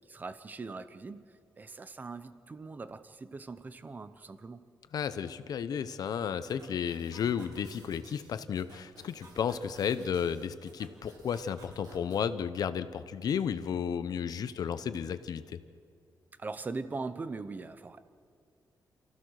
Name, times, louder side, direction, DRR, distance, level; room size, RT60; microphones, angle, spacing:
voice 1, 0.1-1.2 1.6-4.6 16.4-18.0, right 3 dB, 25° right, 12 dB, 0.8 m, -41 dB
voice 2, 4.9-15.6, left 7 dB, 65° left, 12 dB, 0.9 m, -33 dB
sound 1, 6.5-12.2, right 2 dB, 65° right, 4.7 m, -56 dB
28.5 x 15.5 x 6.5 m, 2.2 s
wide cardioid pair, 180°, 7 cm